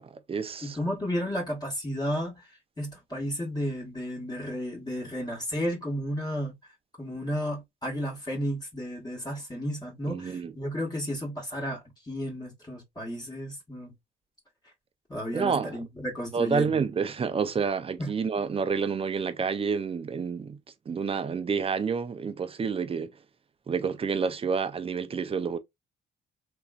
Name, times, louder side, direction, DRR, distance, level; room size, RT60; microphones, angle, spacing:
voice 1, 0.0-0.8 10.1-10.5 15.3-15.8 16.3-20.6 20.9-23.1 23.7-25.6, right 5 dB, 30° right, 0.5 m, -29 dB
voice 2, 0.6-6.5 7.0-13.9 15.1-16.8 18.0-18.1, equal, 20° left, 1.1 m, -33 dB
3.0 x 2.4 x 2.3 m
cardioid pair, 90°, 20 cm